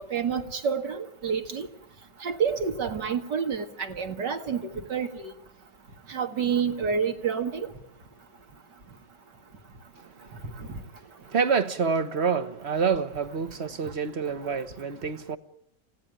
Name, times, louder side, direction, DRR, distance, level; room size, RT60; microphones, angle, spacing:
voice 1, 0.0-1.7 2.2-5.3 6.1-7.7 10.6-10.7, right 6 dB, 70° right, 2.5 m, -28 dB
voice 2, 10.0-15.4, right 5 dB, 40° right, 1.3 m, -28 dB
29.5 x 17.0 x 9.0 m
omnidirectional pair, 1.9 m